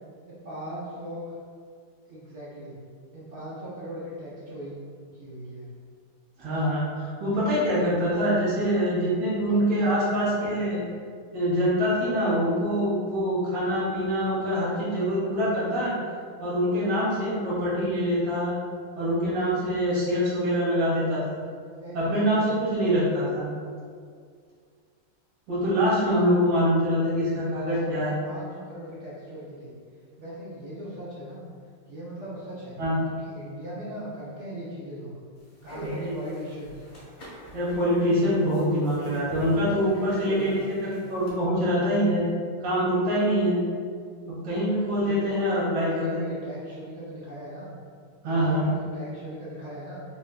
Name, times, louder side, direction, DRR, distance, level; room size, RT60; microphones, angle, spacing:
voice 1, 0.2-1.3 2.1-2.8 3.1-4.8 5.1-5.7 9.5-10.9 21.8-22.7 27.1-29.7 30.2-31.5 31.9-32.8 33.1-35.1 35.6-36.9 39.7-40.8 44.9-45.2 45.8-47.8 48.2-50.0, equal, 65° right, -9 dB, 0.7 m, -40 dB
voice 2, 6.4-10.9 11.3-15.9 16.4-18.5 19.0-21.4 21.9-23.5 25.5-28.1 32.8-33.0 35.8-36.1 37.5-42.3 42.6-43.6 44.3-46.2 48.2-48.7, equal, 85° right, -9 dB, 2.1 m, -24 dB
sound 1, 35.4-41.3, equal, 40° left, 1.0 m, -44 dB
5.3 x 2.6 x 2.2 m, 2.1 s
omnidirectional pair, 2.3 m